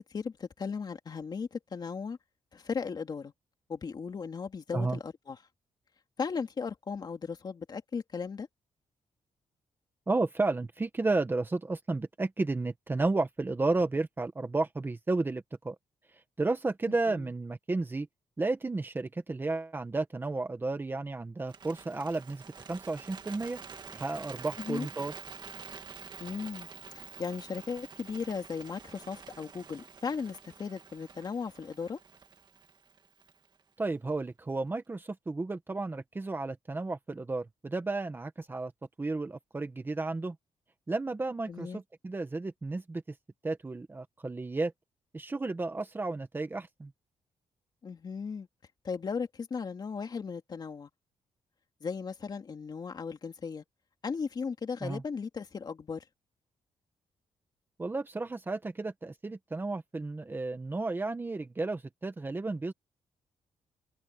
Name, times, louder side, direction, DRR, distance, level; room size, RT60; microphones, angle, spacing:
voice 1, 0.0-2.2 2.5-3.3 3.7-5.4 6.2-8.5 17.1-17.3 24.6-24.9 26.2-26.7 26.9-32.0 41.5-41.8 47.8-48.5 48.8-50.9 51.8-53.6 54.0-56.0, left 5 dB, 35° left, 2.8 m, -36 dB
voice 2, 10.1-15.7 16.4-18.1 18.4-23.6 23.9-25.1 33.8-38.7 39.0-40.3 40.9-43.0 43.4-44.7 45.1-46.9 54.8-55.0 57.8-62.7, right 3 dB, 20° right, 1.3 m, -32 dB
Bird, 21.4-33.6, right 6 dB, 40° right, 2.0 m, -48 dB
wide cardioid pair, 150°, 12 cm